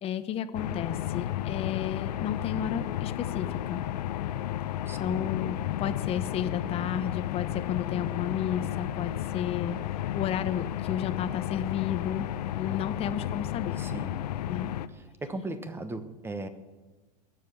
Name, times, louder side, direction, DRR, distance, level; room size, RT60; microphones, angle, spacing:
voice 1, 0.0-3.8 5.0-12.3 12.5-13.8 14.5-14.7, left 9 dB, 30° left, 10 dB, 0.9 m, -32 dB
sound 1, 0.5-14.9, left 12 dB, 75° left, 0.7 m, -33 dB
voice 2, 4.9-5.3 13.8-14.2 15.2-16.5, right 2 dB, 10° right, 11 dB, 1.1 m, -37 dB
21.5 x 7.5 x 7.0 m, 1.2 s
hypercardioid pair, 125°, 21 cm